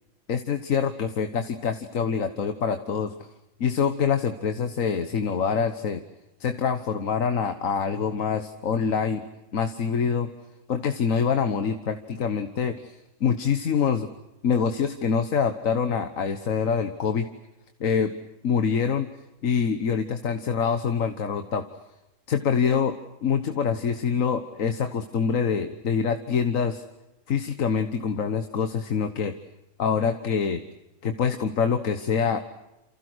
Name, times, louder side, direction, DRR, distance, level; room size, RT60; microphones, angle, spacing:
voice 1, 0.3-3.1 3.6-6.0 6.4-9.3 9.5-10.3 10.7-14.1 14.4-17.3 17.8-18.1 18.4-19.1 19.4-21.7 22.3-22.9 23.2-26.8 27.3-29.3 29.8-30.6 31.0-32.4, left 6 dB, 85° left, 8 dB, 1.7 m, -25 dB
28.5 x 28.5 x 6.3 m, 0.95 s
omnidirectional pair, 1.3 m